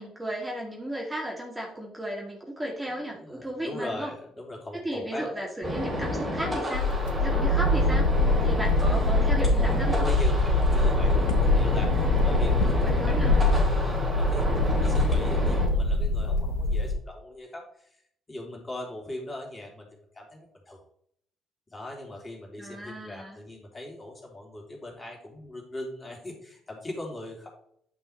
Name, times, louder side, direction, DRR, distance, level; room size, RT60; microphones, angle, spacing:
voice 1, 0.0-4.1 4.8-8.1 8.4-10.1 12.6-13.4 22.6-23.4, right 1 dB, 10° right, -1 dB, 2.3 m, -35 dB
voice 2, 2.9-5.3 9.6-18.0 18.3-19.9 20.1-20.8 21.7-27.5, left 1 dB, 25° left, 0 dB, 3.1 m, -40 dB
sound 1, 5.6-15.7, equal, 35° right, 3.9 m, -31 dB
sound 2, 6.7-16.9, left 2 dB, 80° left, 0.8 m, -23 dB
9.6 x 5.5 x 4.5 m, 0.69 s
figure-of-eight pair, 45°, 0 cm